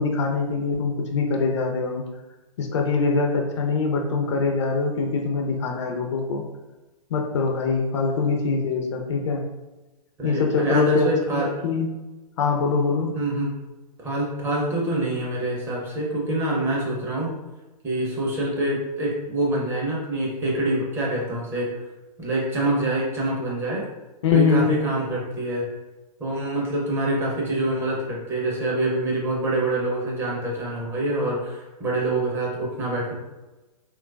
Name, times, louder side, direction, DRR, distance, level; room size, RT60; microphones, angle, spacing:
voice 1, 0.0-2.0 2.6-6.4 7.1-9.4 10.2-11.9 12.4-13.1 24.2-24.8, left 4 dB, 45° left, 2 dB, 0.4 m, -23 dB
voice 2, 10.2-11.5 13.1-13.5 14.0-17.3 17.8-21.7 22.2-23.8 24.3-25.7 26.2-33.1, right 1 dB, 10° right, -5 dB, 0.5 m, -25 dB
2.9 x 2.2 x 2.2 m, 1.1 s
figure-of-eight pair, 115°, 20 cm